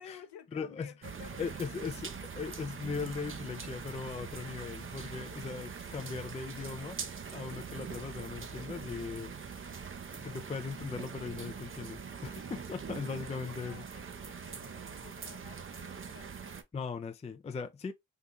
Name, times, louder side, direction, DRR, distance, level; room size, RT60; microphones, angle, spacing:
voice 1, 0.0-1.8 13.2-16.7, left 8 dB, 60° left, 0.9 m, -54 dB
voice 2, 0.5-0.9 1.4-7.0 7.3-9.8 10.1-13.8 16.7-17.9, left 5 dB, 15° left, 0.4 m, -39 dB
sound 1, 1.0-16.6, right 6 dB, 25° right, 0.6 m, -43 dB
3.8 x 2.8 x 2.2 m
supercardioid pair, 50°, 46 cm